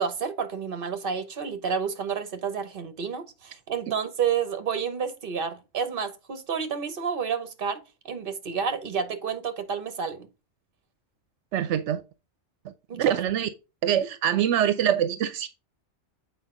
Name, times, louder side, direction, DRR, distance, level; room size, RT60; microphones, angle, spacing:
voice 1, 0.0-10.3 12.9-13.2, right 6 dB, 50° right, 1.1 m, -30 dB
voice 2, 11.5-12.0 12.6-13.5 13.8-15.5, right 10 dB, 80° right, 0.9 m, -24 dB
7.6 x 4.7 x 3.7 m
omnidirectional pair, 1.2 m